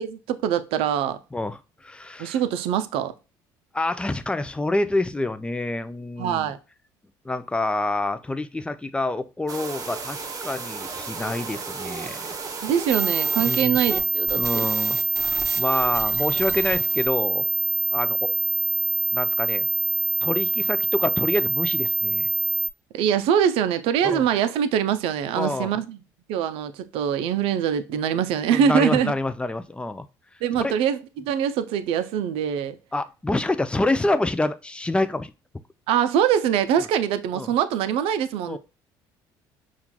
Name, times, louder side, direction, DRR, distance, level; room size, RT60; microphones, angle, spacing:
voice 1, 0.0-1.2 2.2-3.1 6.2-6.6 12.6-14.7 22.9-26.0 26.3-29.1 30.4-32.8 35.9-38.6, right 9 dB, 70° right, 0.5 m, -23 dB
voice 2, 1.3-2.4 3.7-6.5 7.2-12.3 13.4-13.8 14.4-15.0 15.6-17.4 17.9-18.3 19.1-19.7 20.2-22.3 24.0-24.2 25.3-25.7 28.5-30.1 30.6-30.7 32.9-35.3 37.3-37.5 38.5-38.6, left 2 dB, 10° left, 0.4 m, -27 dB
sound 1, 9.5-14.0 14.3-17.1, right 4 dB, 35° right, 0.8 m, -34 dB
sound 2, 12.9-22.7, right 3 dB, 15° right, 1.0 m, -24 dB
5.7 x 2.4 x 2.2 m
supercardioid pair, 70°, 10 cm